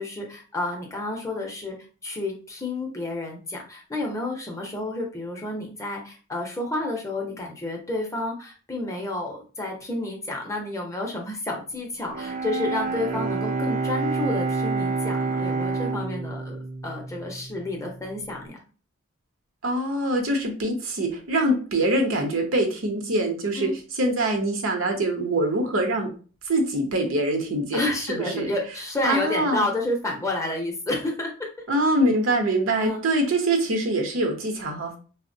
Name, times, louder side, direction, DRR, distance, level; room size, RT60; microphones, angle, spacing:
voice 1, 0.0-1.8 2.0-16.6 16.8-18.6 23.6-23.7 27.7-31.5 32.8-33.0, left 2 dB, 15° left, 0 dB, 0.5 m, -30 dB
Bowed string instrument, 12.1-18.1, right 3 dB, 40° right, 0.4 m, -28 dB
voice 2, 19.6-23.7 24.0-26.1 26.5-28.5 29.0-29.7 31.7-35.0, right 1 dB, 80° right, 3 dB, 0.7 m, -24 dB
3.6 x 2.0 x 2.6 m, 0.38 s
head